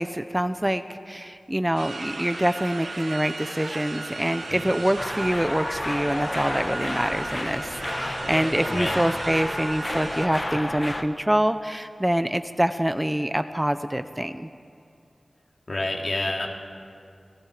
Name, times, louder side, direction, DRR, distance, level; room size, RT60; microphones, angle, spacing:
voice 1, 0.0-14.5, right 1 dB, 10° right, 10 dB, 0.7 m, -25 dB
sound 1, 1.8-10.3, right 3 dB, 75° right, 1.5 m, -36 dB
sound 2, 5.0-11.0, left 1 dB, 30° left, 1.5 m, -31 dB
voice 2, 8.6-9.0 15.7-16.5, left 2 dB, 55° left, 0 dB, 2.8 m, -28 dB
28.5 x 18.5 x 5.0 m, 2.4 s
wide cardioid pair, 55°, 0 cm